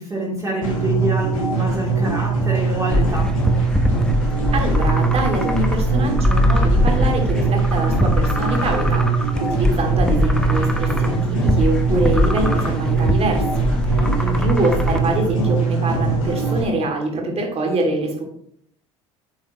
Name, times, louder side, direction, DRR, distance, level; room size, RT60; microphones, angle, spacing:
voice 1, 0.0-3.3 14.0-14.4, right 1 dB, 20° right, -5 dB, 3.3 m, -26 dB
sound 1, 0.6-16.6, right 4 dB, 80° left, 2.5 m, -21 dB
sound 2, 2.9-15.0, left 1 dB, 5° left, 1.1 m, -22 dB
voice 2, 4.5-18.2, right 2 dB, 35° right, 1 dB, 2.8 m, -24 dB
9.6 x 7.1 x 3.1 m, 0.68 s
figure-of-eight pair, 65°, 17 cm